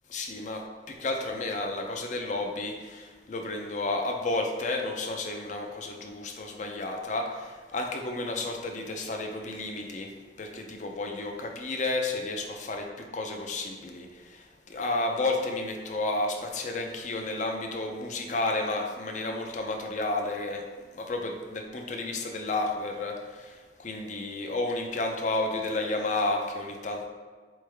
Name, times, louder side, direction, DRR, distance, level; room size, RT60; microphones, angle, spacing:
voice 1, 0.1-12.9 13.1-20.6 20.9-27.1, left 2 dB, 45° left, 3 dB, 0.5 m, -32 dB
4.2 x 3.2 x 3.4 m, 1.5 s
head